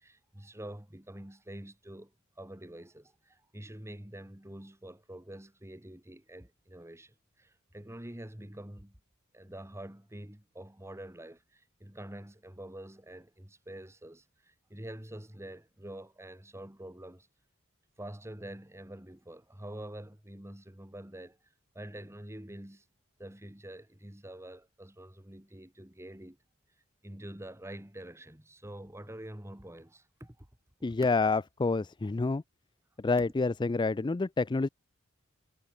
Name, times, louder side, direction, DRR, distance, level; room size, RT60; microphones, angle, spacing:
voice 1, 0.0-9.0 9.3-17.3 18.0-21.4 21.7-22.9 23.2-26.4 27.0-30.5, right 1 dB, 15° right, 1.9 m, -46 dB
voice 2, 30.8-32.4 33.0-34.7, left 3 dB, 20° left, 0.4 m, -28 dB
head